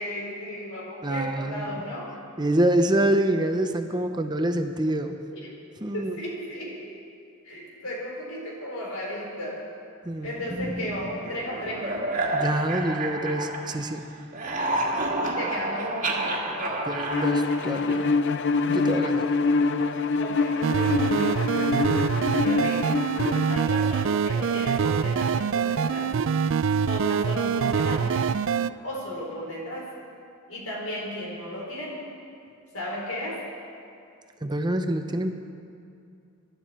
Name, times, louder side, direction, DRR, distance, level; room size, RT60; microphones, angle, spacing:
voice 1, 0.0-2.1 5.3-5.5 5.9-6.9 7.4-9.6 10.2-12.0 15.2-17.0 20.2-21.5 22.4-22.9 23.5-26.1 26.6-28.3 28.8-29.9 30.5-32.0 32.7-33.4, equal, 80° left, -3 dB, 4.3 m, -34 dB
voice 2, 1.0-1.8 2.4-5.2 5.8-6.1 10.1-10.3 12.3-14.0 16.9-18.1 18.7-19.3 19.8-19.9 34.4-35.3, right 1 dB, 20° right, 6 dB, 0.7 m, -26 dB
sound 1, 10.5-14.0 14.2-18.3, right 2 dB, 40° right, 1.7 m, -30 dB
Bowed string instrument, 17.1-23.7, left 4 dB, 60° left, 0.6 m, -25 dB
sound 2, 20.6-28.7, right 6 dB, 65° right, 0.4 m, -25 dB
24.5 x 12.0 x 4.4 m, 2.5 s
head